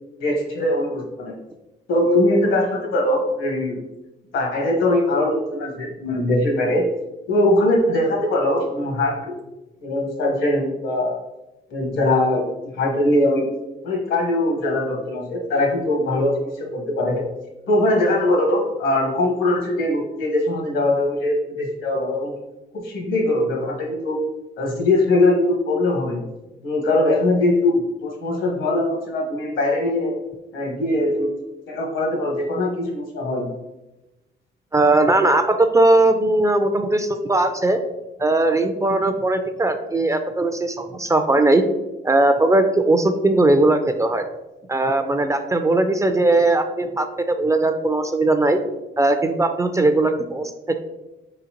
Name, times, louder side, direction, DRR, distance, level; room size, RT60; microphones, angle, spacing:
voice 1, 0.2-1.3 1.9-3.8 4.3-6.9 7.3-9.4 9.8-11.2 11.7-13.4 13.8-17.2 17.6-22.3 22.8-24.2 24.6-26.2 26.6-30.2 30.5-31.3 31.7-33.5, left 1 dB, 80° left, 0 dB, 1.2 m, -21 dB
voice 2, 34.7-37.8 38.2-41.6 42.0-44.3 44.7-48.6 49.0-50.7, right 2 dB, 15° right, 7 dB, 0.3 m, -19 dB
4.1 x 3.9 x 2.9 m, 1.0 s
cardioid pair, 90°, 20 cm